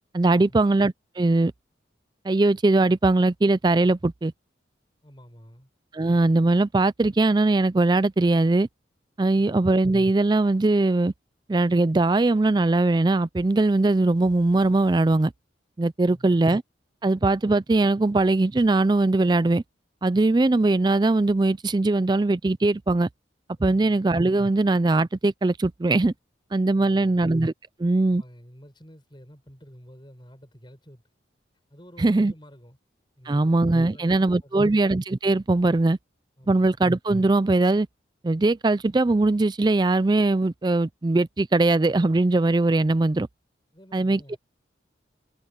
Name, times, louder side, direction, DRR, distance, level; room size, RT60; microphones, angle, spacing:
voice 1, 0.1-1.5 2.2-4.3 5.9-8.7 9.2-11.1 11.5-15.3 15.8-16.6 17.0-19.6 20.0-23.1 23.6-26.1 26.5-27.5 27.8-28.2 32.0-32.3 33.3-36.0 36.5-37.9 38.2-43.3 43.9-44.4, right 2 dB, 20° right, 0.4 m, -21 dB
voice 2, 5.0-5.7 9.3-9.6 16.0-16.4 23.6-24.0 26.7-27.2 28.1-31.0 31.7-32.8 33.2-34.8 36.4-36.7 43.7-44.4, equal, 25° left, 6.7 m, -49 dB
head